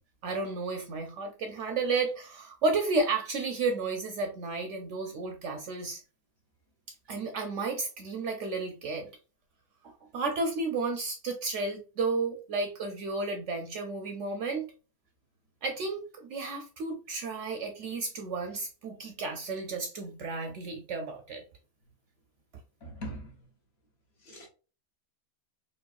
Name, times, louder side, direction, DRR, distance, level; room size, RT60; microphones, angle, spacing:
voice 1, 0.2-6.0 7.1-9.1 9.8-14.7 15.6-21.4, right 3 dB, 65° right, 0.7 m, -32 dB
voice 2, 22.8-23.4 24.2-24.5, right 1 dB, 55° left, 0.9 m, -41 dB
4.2 x 2.3 x 2.3 m
omnidirectional pair, 1.5 m